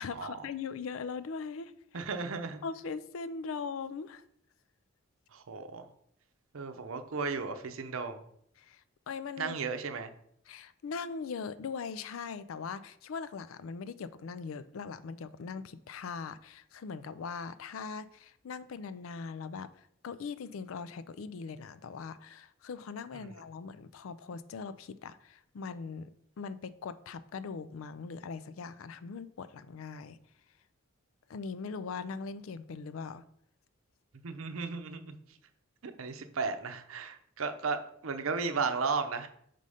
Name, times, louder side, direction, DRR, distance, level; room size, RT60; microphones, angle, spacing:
voice 1, 0.0-1.7 2.6-4.2 8.6-9.6 10.5-26.1 26.4-30.2 31.3-33.2, left 5 dB, 75° left, 0.4 m, -40 dB
voice 2, 1.9-2.6 5.3-5.8 6.5-8.2 9.4-10.1 23.2-23.3 34.2-35.2 35.8-37.8 38.0-39.3, right 4 dB, 80° right, 0.7 m, -34 dB
5.4 x 3.8 x 4.9 m
head